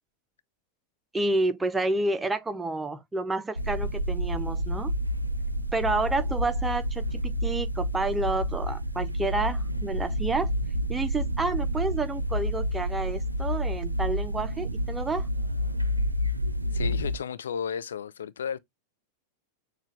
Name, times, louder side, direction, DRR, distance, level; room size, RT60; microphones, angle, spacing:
voice 1, 1.1-4.9 5.7-10.5 10.9-15.3, right 2 dB, 10° right, 0.6 m, -29 dB
sound 1, 3.6-17.2, equal, 85° right, 0.4 m, -29 dB
voice 2, 16.7-18.6, left 7 dB, 65° left, 0.4 m, -33 dB
6.5 x 2.3 x 3.0 m
figure-of-eight pair, 90°, 0 cm